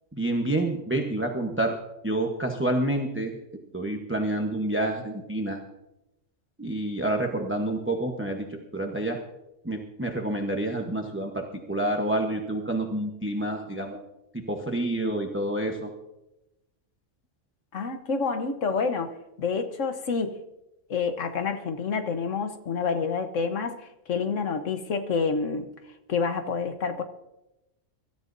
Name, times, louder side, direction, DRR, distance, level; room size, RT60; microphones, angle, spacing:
voice 1, 0.1-1.8 2.0-3.3 3.7-5.6 6.6-9.2 9.6-14.0 14.5-15.9, right 1 dB, 10° right, 2 dB, 1.0 m, -28 dB
voice 2, 17.7-20.4 20.9-25.7 26.1-27.0, left 5 dB, 80° left, 8 dB, 1.4 m, -28 dB
24.5 x 13.0 x 2.7 m, 0.94 s
omnidirectional pair, 1.3 m